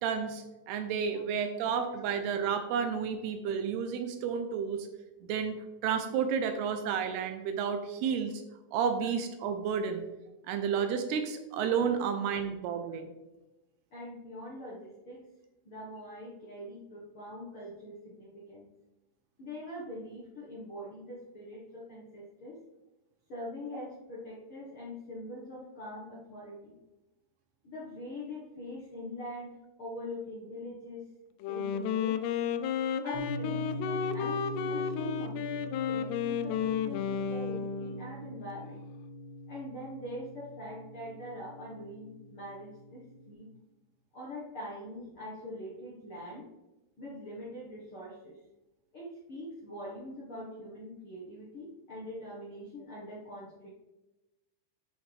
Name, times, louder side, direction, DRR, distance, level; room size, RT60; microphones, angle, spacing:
voice 1, 0.0-4.9 5.2-5.6 5.8-8.4 8.7-10.0 10.5-13.1, right 7 dB, 80° right, 7 dB, 2.7 m, -31 dB
voice 2, 13.9-15.2 15.6-18.7 19.4-22.6 23.3-26.8 27.6-31.1 31.5-32.2 33.0-38.8 39.5-43.5 44.1-46.4 47.0-48.4 48.9-53.7, left 1 dB, 60° left, -6 dB, 1.4 m, -43 dB
Wind instrument woodwind instrument, 31.4-38.2, left 8 dB, 80° left, 2.5 m, -32 dB
sound 1, 33.1-43.3, equal, 30° left, 1.9 m, -42 dB
11.5 x 6.9 x 3.5 m, 1.0 s
omnidirectional pair, 4.8 m